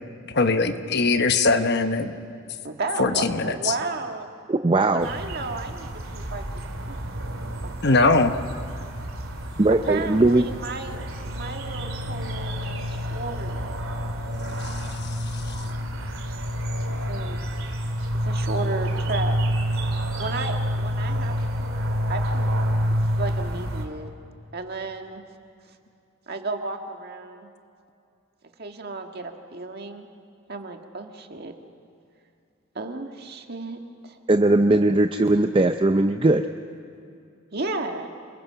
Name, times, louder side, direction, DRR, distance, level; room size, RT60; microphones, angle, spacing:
voice 1, 0.3-2.1 3.0-3.5 7.8-8.3, left 3 dB, 55° left, 8 dB, 1.1 m, -20 dB
voice 2, 2.6-4.3 4.7-6.6 6.9-7.0 7.6-8.1 9.7-13.7 17.1-17.4 18.2-19.4 20.2-21.8 22.1-22.5 23.1-24.1 24.5-25.2 26.3-27.5 28.6-30.1 30.5-31.5 32.7-34.2 37.5-38.1, right 3 dB, 50° right, 4 dB, 1.7 m, -33 dB
voice 3, 4.5-5.1 9.6-10.4 34.3-36.4, right 2 dB, 25° right, 7 dB, 0.5 m, -19 dB
sound 1, 5.0-23.9, equal, 90° right, 2.7 m, -28 dB
28.5 x 21.5 x 5.8 m, 2.6 s
head